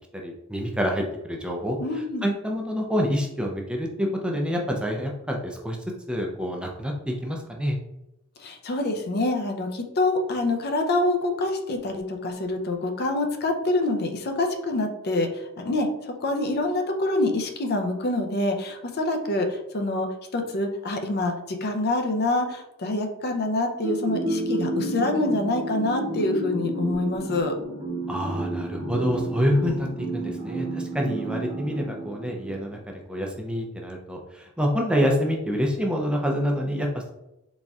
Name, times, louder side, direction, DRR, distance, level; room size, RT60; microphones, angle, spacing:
voice 1, 0.1-5.8 6.1-7.8 28.1-37.1, equal, 5° right, 0 dB, 0.4 m, -27 dB
voice 2, 1.8-2.2 8.4-20.1 20.3-27.5, left 2 dB, 45° left, 4 dB, 0.5 m, -26 dB
sound 1, 23.8-32.6, right 2 dB, 20° right, 0.8 m, -31 dB
4.1 x 3.5 x 2.3 m, 0.90 s
head